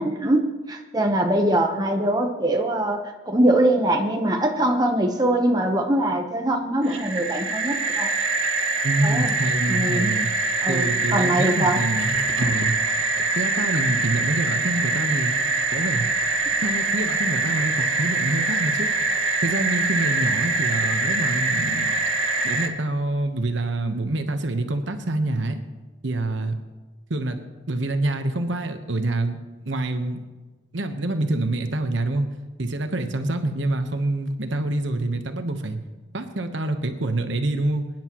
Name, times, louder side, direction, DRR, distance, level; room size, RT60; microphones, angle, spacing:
voice 1, 0.0-8.1 9.0-9.4 9.7-10.1 10.6-11.8, right 1 dB, 20° right, 2 dB, 1.0 m, -22 dB
sound 1, 6.8-22.7, right 3 dB, 85° right, 1.7 m, -24 dB
voice 2, 8.8-10.3 10.7-12.7 13.2-15.3 15.7-16.1 16.6-18.9 19.4-21.9 22.4-25.6 26.0-26.5 27.1-27.4 27.7-29.4 29.6-30.2 30.7-32.3 32.6-35.8 36.1-37.9, right 2 dB, 70° right, 6 dB, 1.1 m, -26 dB
23.0 x 10.5 x 3.1 m, 1.2 s
head